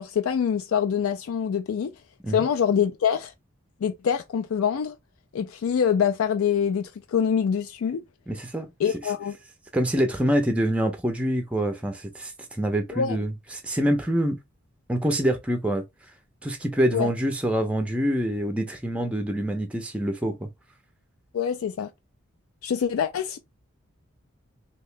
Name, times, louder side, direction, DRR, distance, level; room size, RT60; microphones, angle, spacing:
voice 1, 0.0-1.9 2.3-3.3 3.8-5.0 5.3-8.0 8.8-9.4 12.9-13.2 16.9-17.1 21.3-21.9 22.6-23.4, left 7 dB, 85° left, 0.4 m, -25 dB
voice 2, 8.3-8.7 9.7-14.4 14.9-15.8 16.4-20.5, equal, 5° right, 0.4 m, -25 dB
2.9 x 2.8 x 3.2 m
head